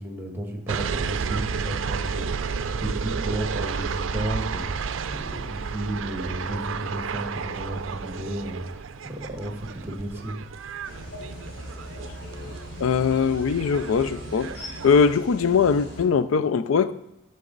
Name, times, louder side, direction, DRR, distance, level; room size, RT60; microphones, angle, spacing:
voice 1, 0.0-10.4, right 1 dB, 10° right, 2 dB, 1.5 m, -33 dB
sound 1, 0.7-15.1, right 5 dB, 70° right, 0.4 m, -32 dB
sound 2, 10.8-16.0, equal, 55° left, 4.2 m, -40 dB
voice 2, 12.8-14.5 14.8-16.9, left 6 dB, 90° left, 14 dB, 0.4 m, -21 dB
13.0 x 6.6 x 3.9 m, 0.87 s
head